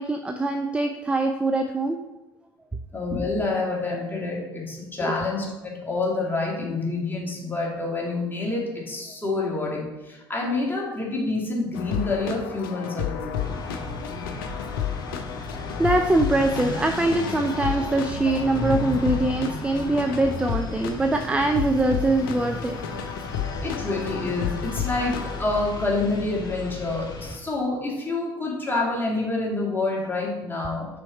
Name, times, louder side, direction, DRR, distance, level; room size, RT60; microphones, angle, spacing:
voice 1, 0.0-2.0 5.0-5.2 15.8-22.8, right 2 dB, 10° right, 5 dB, 0.5 m, -23 dB
voice 2, 2.9-13.3 23.6-30.9, left 3 dB, 15° left, -3 dB, 2.4 m, -27 dB
sound 1, 11.7-25.4, left 8 dB, 70° left, 0.6 m, -32 dB
sound 2, 13.4-27.4, left 2 dB, 35° left, 1.3 m, -35 dB
6.1 x 4.5 x 4.5 m, 1.1 s
figure-of-eight pair, 55°, 12 cm